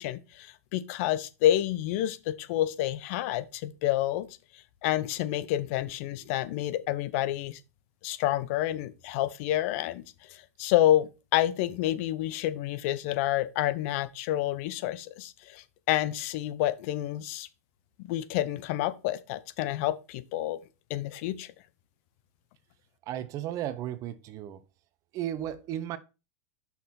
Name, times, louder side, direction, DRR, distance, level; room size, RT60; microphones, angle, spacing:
voice 1, 0.0-4.3 4.8-7.6 8.0-10.0 10.3-17.5 18.0-20.6 20.9-21.5, left 13 dB, 60° left, 0.8 m, -29 dB
voice 2, 23.1-24.6 25.1-26.0, right 11 dB, 40° right, 0.8 m, -34 dB
6.2 x 5.6 x 4.3 m
hypercardioid pair, 120°, 8 cm